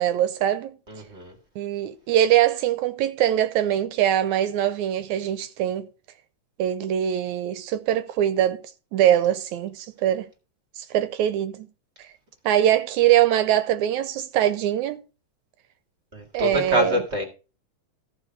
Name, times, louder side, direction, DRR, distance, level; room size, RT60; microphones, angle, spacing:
voice 1, 0.0-0.8 1.6-5.9 6.6-8.6 8.9-10.3 10.8-11.7 12.5-15.0 16.3-17.0, right 11 dB, 80° right, 2.0 m, -22 dB
voice 2, 0.9-1.4 16.1-17.2, left 1 dB, 25° right, 2.0 m, -26 dB
14.0 x 4.9 x 5.9 m
omnidirectional pair, 3.5 m